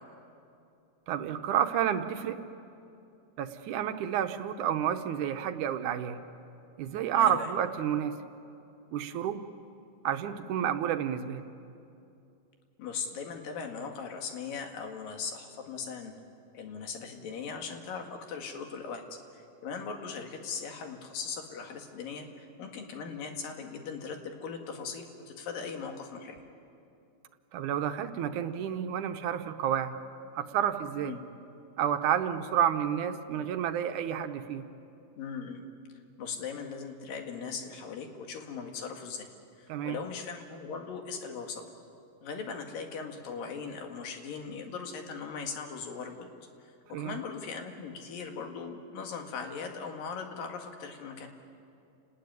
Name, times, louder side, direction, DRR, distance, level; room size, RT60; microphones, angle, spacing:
voice 1, 1.1-2.4 3.4-6.2 6.8-8.2 8.9-9.4 10.0-11.5 27.5-29.9 30.3-31.2 31.8-34.7 39.7-40.0 46.9-47.2, right 9 dB, 70° right, 8 dB, 2.2 m, -30 dB
voice 2, 7.1-7.5 12.8-16.1 16.5-19.0 19.3-26.4 31.0-31.2 35.2-35.6 36.2-39.3 39.6-41.6 42.2-46.3 46.6-51.3, left 5 dB, 90° left, 4 dB, 3.7 m, -39 dB
29.5 x 19.5 x 9.4 m, 2.6 s
omnidirectional pair, 3.9 m